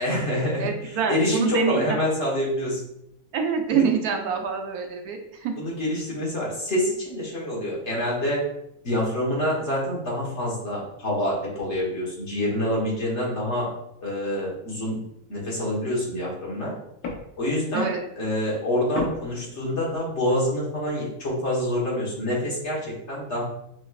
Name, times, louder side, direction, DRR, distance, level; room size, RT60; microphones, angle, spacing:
voice 1, 0.0-2.8 3.7-3.8 5.6-8.4 8.8-13.7 14.0-15.0 15.3-16.7 17.4-23.4, left 1 dB, 50° left, -4 dB, 1.6 m, -26 dB
voice 2, 0.6-2.0 3.3-5.5 17.7-18.0, right 6 dB, 85° right, 3 dB, 1.2 m, -26 dB
sound 1, 17.0-17.6 18.9-20.1, left 3 dB, 90° left, 1.3 m, -35 dB
6.0 x 3.1 x 2.3 m, 0.79 s
omnidirectional pair, 1.6 m